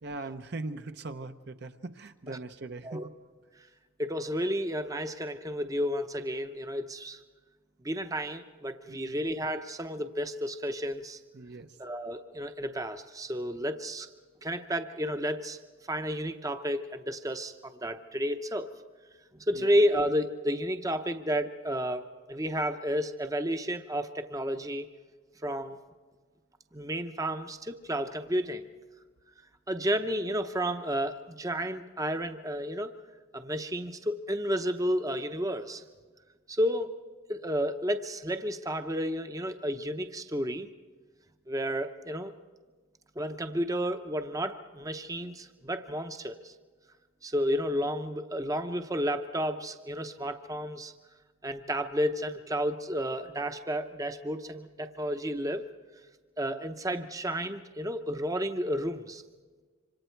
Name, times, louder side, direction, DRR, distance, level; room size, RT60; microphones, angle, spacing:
voice 1, 0.0-3.1 8.9-9.3 11.3-11.8 19.5-19.7, right 2 dB, 50° right, 8 dB, 0.7 m, -40 dB
voice 2, 4.0-7.2 7.8-11.2 11.8-14.1 14.4-15.6 15.9-18.7 19.5-22.0 22.3-24.9 25.4-25.8 26.7-28.7 29.7-32.9 33.3-35.8 36.5-36.9 37.3-40.7 41.5-42.3 43.2-46.5 47.2-50.9 51.4-55.6 56.4-59.2, equal, 15° right, 8 dB, 0.8 m, -31 dB
27.0 x 25.5 x 4.6 m, 1.4 s
head